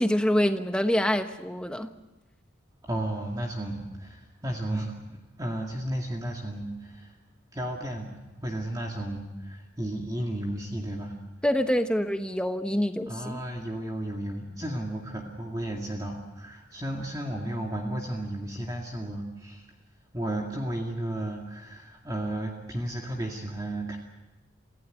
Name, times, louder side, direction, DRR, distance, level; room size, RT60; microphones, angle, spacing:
voice 1, 0.0-1.9 11.4-13.4, equal, 5° left, 7 dB, 1.1 m, -26 dB
voice 2, 2.8-7.2 7.5-11.1 13.1-19.7 20.1-24.0, right 1 dB, 20° right, 0 dB, 2.1 m, -33 dB
27.0 x 16.0 x 9.1 m, 1.1 s
head